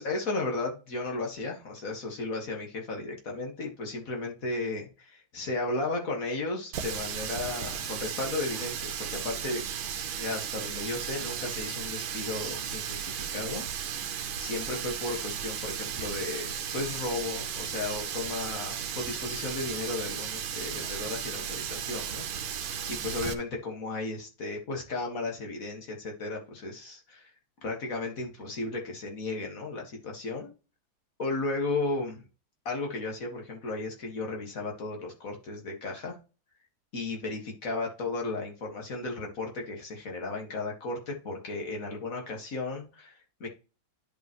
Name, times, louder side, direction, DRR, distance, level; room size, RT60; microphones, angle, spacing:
voice 1, 0.0-9.6 10.2-13.7 14.2-27.3 27.6-30.5 31.2-32.2 32.7-36.2 36.9-43.5, left 3 dB, 45° left, 1 dB, 2.1 m, -34 dB
Water tap faucet, 6.7-23.3, right 8 dB, 90° right, 1.6 m, -35 dB
11.0 x 5.3 x 3.1 m, 0.34 s
omnidirectional pair, 2.1 m